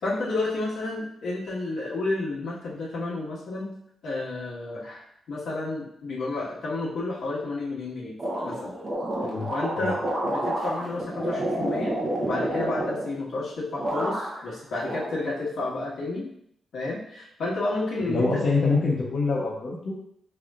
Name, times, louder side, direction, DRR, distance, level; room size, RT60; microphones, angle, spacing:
voice 1, 0.0-3.7 4.0-8.2 8.4-8.7 9.5-16.3 16.7-18.4, left 2 dB, 80° left, -6 dB, 1.5 m, -31 dB
sound 1, 8.2-13.5 13.8-14.5 14.8-15.7, right 1 dB, 25° right, 0.8 m, -29 dB
voice 2, 18.1-19.9, left 3 dB, 45° left, -5 dB, 0.9 m, -25 dB
5.4 x 3.4 x 2.4 m, 0.71 s
wide cardioid pair, 175°, 0 cm